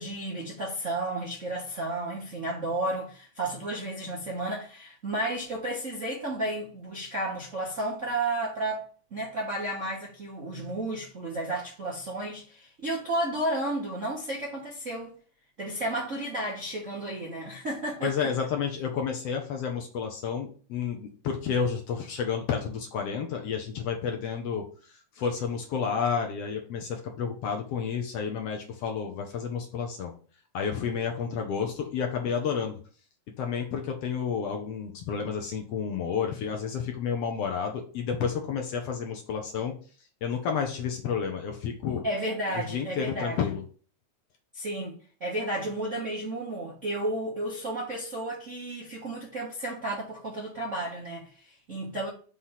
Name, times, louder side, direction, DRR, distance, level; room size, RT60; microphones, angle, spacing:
voice 1, 0.0-8.8 9.1-15.1 15.6-18.3 42.0-43.4 44.5-52.1, right 1 dB, 50° right, 0.9 m, -32 dB
voice 2, 18.0-30.1 30.5-32.8 33.4-39.7 40.2-42.0 42.5-43.6, left 6 dB, 70° left, 1.6 m, -31 dB
5.7 x 3.3 x 5.6 m
omnidirectional pair, 3.3 m